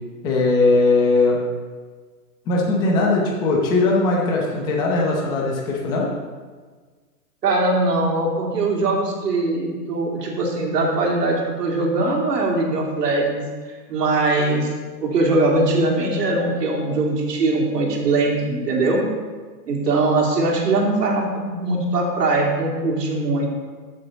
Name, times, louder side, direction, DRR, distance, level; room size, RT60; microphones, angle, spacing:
voice 1, 0.2-1.4 2.5-6.1, left 3 dB, 10° left, -2 dB, 0.7 m, -19 dB
voice 2, 7.4-13.4 13.9-14.7 15.0-19.0 19.7-23.5, right 2 dB, 80° right, -1 dB, 3.1 m, -21 dB
14.5 x 6.9 x 4.1 m, 1.5 s
hypercardioid pair, 160°, 48 cm